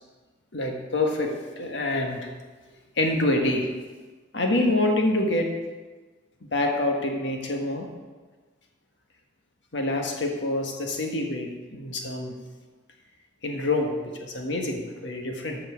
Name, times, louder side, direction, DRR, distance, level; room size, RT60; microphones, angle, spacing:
voice 1, 0.5-2.3 3.0-3.7 4.3-5.5 6.5-7.9 9.7-12.3 13.4-15.6, left 2 dB, 70° left, 2 dB, 1.5 m, -26 dB
8.3 x 5.9 x 7.0 m, 1.3 s
head